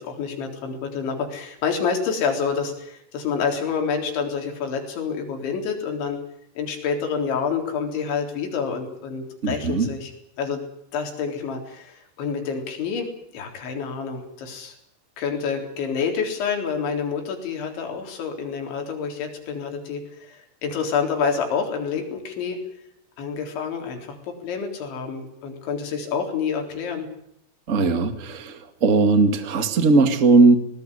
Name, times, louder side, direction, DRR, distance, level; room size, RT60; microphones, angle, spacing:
voice 1, 0.0-6.2 6.6-10.1 10.4-10.6 10.9-14.8 15.2-22.6 23.2-24.2 24.4-27.1, left 6 dB, 80° left, 3 dB, 6.2 m, -28 dB
voice 2, 9.4-9.9 27.7-30.5, right 3 dB, 65° right, 9 dB, 0.7 m, -18 dB
20.5 x 18.5 x 10.0 m, 0.75 s
omnidirectional pair, 5.2 m